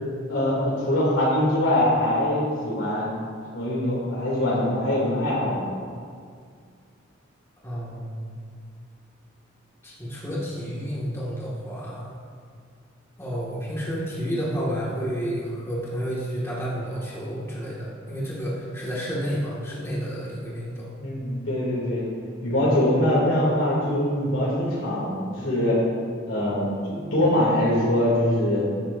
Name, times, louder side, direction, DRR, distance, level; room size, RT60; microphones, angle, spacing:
voice 1, 0.3-3.1 3.5-5.6 21.0-22.0 22.4-25.8 26.3-28.7, left 1 dB, 75° left, -8 dB, 2.9 m, -23 dB
voice 2, 7.6-8.2 9.8-12.1 13.2-20.9, equal, 15° left, -7 dB, 2.0 m, -30 dB
15.5 x 11.0 x 2.7 m, 2.2 s
head